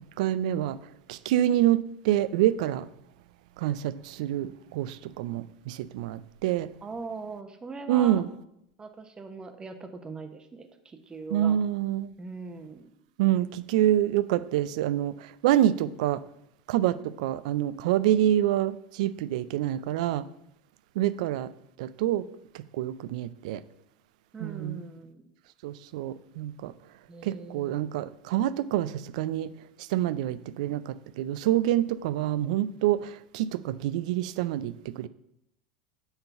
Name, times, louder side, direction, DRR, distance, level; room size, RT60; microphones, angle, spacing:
voice 1, 0.2-0.8 1.1-2.8 3.6-6.7 7.9-8.3 11.3-12.1 13.2-15.1 15.4-16.2 16.7-20.2 21.0-21.5 21.8-22.2 22.5-23.6 24.4-24.8 25.6-26.7 27.2-29.5 29.9-35.1, right 12 dB, 70° right, 0.4 m, -27 dB
voice 2, 6.8-8.2 8.8-11.6 12.2-12.9 24.3-25.2 27.1-27.9, right 4 dB, 20° right, 0.9 m, -41 dB
6.9 x 3.8 x 5.7 m
hypercardioid pair, 95°, 4 cm